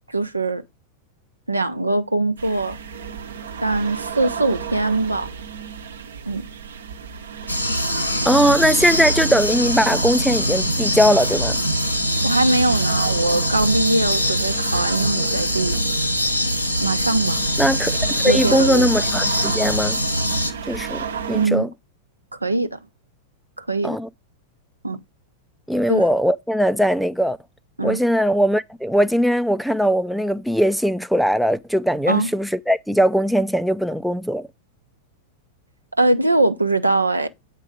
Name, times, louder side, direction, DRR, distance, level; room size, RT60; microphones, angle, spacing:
voice 1, 0.1-0.6 1.5-2.8 3.6-5.3 6.3-6.5 12.2-15.8 16.8-17.4 18.3-18.9 21.3-21.7 22.3-22.8 23.6-24.0 24.8-25.0 25.9-26.0 27.8-28.0 32.1-32.3 36.0-37.3, right 2 dB, 85° right, 0.8 m, -21 dB
sound 1, 2.4-21.5, right 6 dB, 65° right, 0.9 m, -33 dB
sound 2, 7.5-20.5, equal, 90° left, 1.0 m, -23 dB
voice 2, 8.3-11.6 17.6-18.0 18.2-20.0 20.7-21.7 23.8-24.1 25.7-27.4 27.8-34.5, equal, ahead, 0.5 m, -20 dB
8.3 x 4.6 x 5.0 m
figure-of-eight pair, 95°, 0 cm